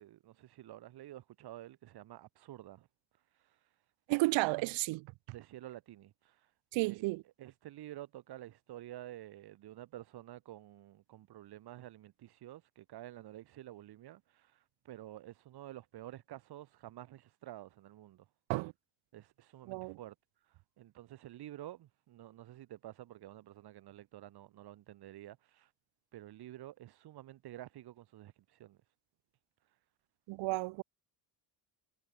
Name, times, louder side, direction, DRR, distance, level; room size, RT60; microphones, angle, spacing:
voice 1, 0.0-2.9 3.4-3.6 5.3-6.5 6.9-7.0 7.4-18.3 19.1-20.2 20.8-25.7 26.1-28.8, right 14 dB, 60° right, 5.9 m, -50 dB
voice 2, 4.1-5.1 6.7-7.2 18.5-18.7 19.7-20.0 30.3-30.8, right 23 dB, 85° right, 1.3 m, -32 dB
cardioid pair, 150°, 44 cm